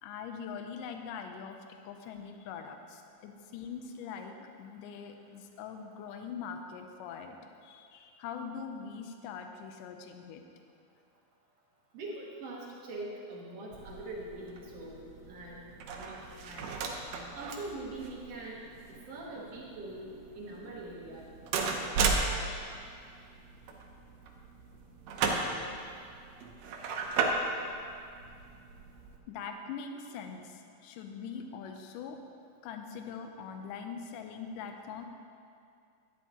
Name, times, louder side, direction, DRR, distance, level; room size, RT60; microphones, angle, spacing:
voice 1, 0.0-1.6 1.8-7.4 7.6-10.4 29.3-32.2 32.6-35.0, left 6 dB, 75° left, 5 dB, 2.0 m, -42 dB
voice 2, 11.9-15.0 15.3-15.6 16.0-16.8 17.3-18.6 18.9-20.1 20.3-21.3, right 2 dB, 65° right, -4 dB, 1.6 m, -43 dB
sound 1, 13.7-29.2, right 4 dB, 85° right, 1.5 m, -36 dB
11.0 x 10.5 x 2.9 m, 2.4 s
omnidirectional pair, 4.2 m